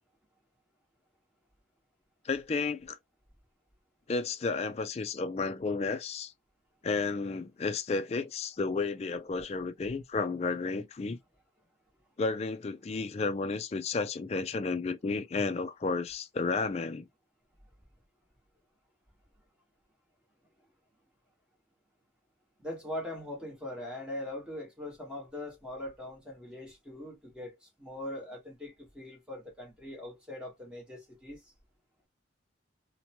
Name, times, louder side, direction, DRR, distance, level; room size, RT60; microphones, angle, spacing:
voice 1, 2.2-3.0 4.1-6.3 6.8-11.2 12.2-17.1, left 4 dB, 35° left, 0.3 m, -32 dB
voice 2, 22.6-31.5, left 1 dB, 5° right, 1.2 m, -41 dB
2.8 x 2.1 x 2.8 m
head